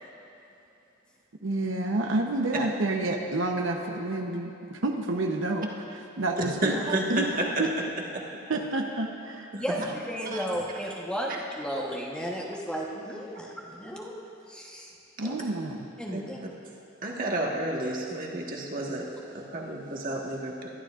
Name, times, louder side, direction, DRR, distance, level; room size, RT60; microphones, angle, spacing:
voice 1, 1.4-6.8 7.1-7.3 7.6-7.7 8.5-9.5 15.2-15.9, right 2 dB, 75° right, 3 dB, 0.8 m, -29 dB
voice 2, 6.6-7.4 8.1-8.2 9.5-9.9 10.2-10.5 15.2-15.3 16.1-16.2 17.0-19.1 19.3-20.7, right 1 dB, 45° right, -1 dB, 1.5 m, -31 dB
voice 3, 9.6-14.1 14.5-14.9 15.2-15.4 16.0-16.4, equal, 5° left, -3 dB, 1.1 m, -34 dB
21.5 x 12.0 x 2.5 m, 2.8 s
head